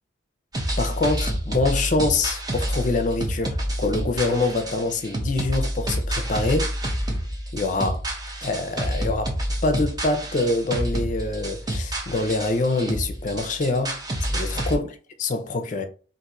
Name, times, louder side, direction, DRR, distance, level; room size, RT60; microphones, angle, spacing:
sound 1, 0.5-14.7, right 1 dB, 20° right, 0.6 m, -28 dB
voice 1, 0.8-6.7 7.5-8.0 8.4-9.3 9.6-14.8 15.2-15.8, left 2 dB, 40° left, 0.5 m, -25 dB
2.6 x 2.4 x 4.1 m
head